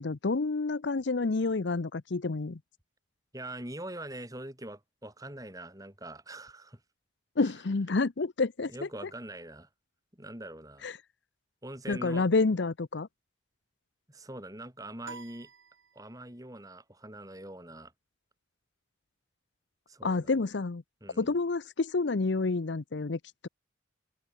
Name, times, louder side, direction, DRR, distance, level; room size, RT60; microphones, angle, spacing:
voice 1, 0.0-2.6 7.4-8.7 10.8-11.0 11.9-13.1 20.0-20.8 21.2-23.5, left 3 dB, 65° left, 0.7 m, -29 dB
voice 2, 3.3-6.8 7.4-7.5 8.7-9.7 10.1-10.9 11.6-12.3 14.1-15.5 15.9-17.9 19.9-20.4 21.0-21.4, right 1 dB, 20° right, 4.8 m, -43 dB
sound 1, 15.0-16.5, right 5 dB, 75° right, 2.2 m, -49 dB
head